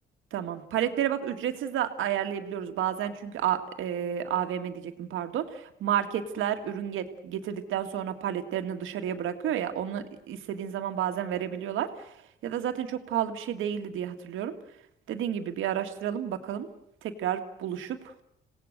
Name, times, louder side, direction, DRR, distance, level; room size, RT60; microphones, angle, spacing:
voice 1, 0.3-12.2 12.4-14.5 15.1-16.7 17.0-18.1, right 10 dB, 85° right, 7 dB, 2.0 m, -31 dB
27.5 x 17.5 x 6.7 m, 0.76 s
cardioid pair, 90°, 20 cm